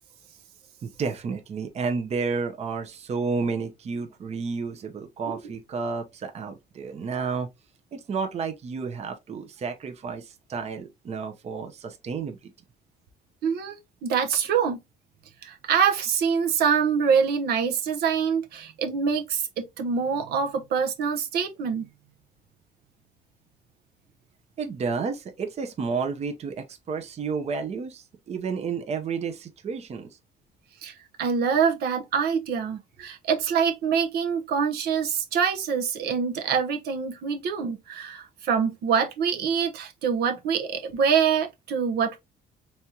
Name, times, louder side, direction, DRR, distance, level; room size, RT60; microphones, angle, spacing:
voice 1, 0.8-7.5 7.9-12.5 24.6-30.1, right 5 dB, 40° right, 0.8 m, -31 dB
voice 2, 13.4-14.8 15.4-21.9 30.8-42.2, right 6 dB, 70° right, 0.9 m, -25 dB
4.2 x 3.5 x 2.8 m
cardioid pair, 110°, 17 cm